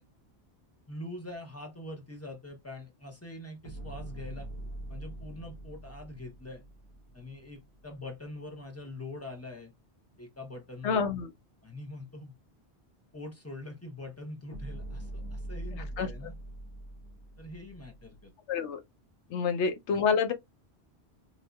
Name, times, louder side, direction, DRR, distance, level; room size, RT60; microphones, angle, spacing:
voice 1, 0.9-4.5 4.9-6.7 7.1-9.7 10.2-11.0 11.6-12.3 13.1-16.4 17.4-18.3 19.3-19.4, left 2 dB, 15° left, 0.8 m, -44 dB
sound 1, 3.6-7.9 14.5-18.3, right 1 dB, 65° left, 1.6 m, -43 dB
voice 2, 10.8-11.3 16.0-16.1 18.5-18.8 19.3-20.3, left 6 dB, 85° left, 1.0 m, -27 dB
4.0 x 2.7 x 2.3 m
omnidirectional pair, 1.1 m